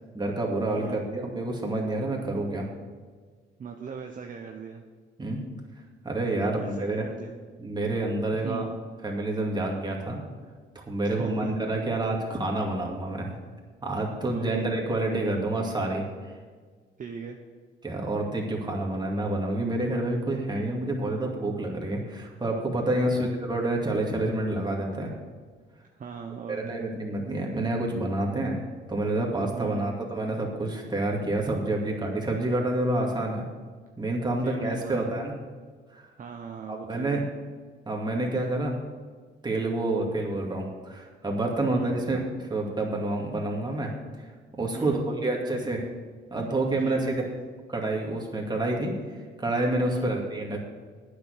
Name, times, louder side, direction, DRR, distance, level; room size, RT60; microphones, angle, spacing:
voice 1, 0.1-2.7 5.2-5.4 6.0-7.1 7.6-8.7 9.0-10.2 10.7-13.3 13.8-16.3 17.8-25.1 26.5-28.6 28.9-33.5 34.0-35.4 35.9-36.1 36.7-37.3 37.9-38.8 39.4-43.9 44.2-44.3 44.5-45.8 46.3-47.1 47.7-50.6, right 2 dB, 20° right, -1 dB, 2.3 m, -28 dB
voice 2, 3.6-4.8 6.5-7.3 8.4-8.7 11.1-11.5 14.3-14.7 17.0-17.4 22.9-23.3 25.9-26.8 29.5-29.9 34.4-35.1 36.2-37.3 41.7-42.0 44.7-45.1 46.8-47.2 49.9-50.2, right 6 dB, 40° right, 3 dB, 0.9 m, -39 dB
9.0 x 6.7 x 8.1 m, 1.5 s
cardioid pair, 90°, 20 cm